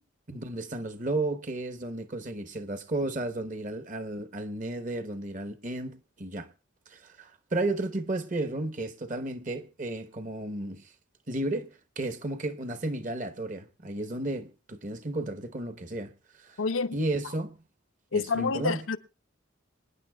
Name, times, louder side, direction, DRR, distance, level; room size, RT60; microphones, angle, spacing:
voice 1, 0.3-6.5 6.9-10.9 11.3-16.1 16.4-16.6 16.9-17.6 18.1-18.8, right 2 dB, 40° right, 1.0 m, -33 dB
voice 2, 16.6-17.0 18.1-19.0, left 4 dB, 85° left, 0.7 m, -28 dB
26.5 x 9.9 x 2.3 m
head